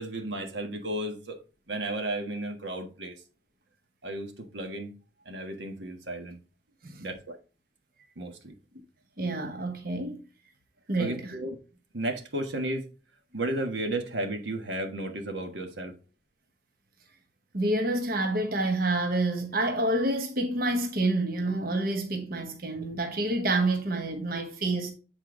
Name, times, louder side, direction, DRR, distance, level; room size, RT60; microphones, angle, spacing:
voice 1, 0.0-1.4 1.7-3.2 4.0-4.9 5.2-6.4 7.0-7.4 8.2-8.5 11.0-11.6 11.9-12.9 13.3-16.0, right 1 dB, 90° right, 1.4 m, -33 dB
voice 2, 9.2-10.2 10.9-11.4 17.5-24.9, right 2 dB, 55° right, 1.1 m, -28 dB
8.2 x 4.4 x 3.7 m
head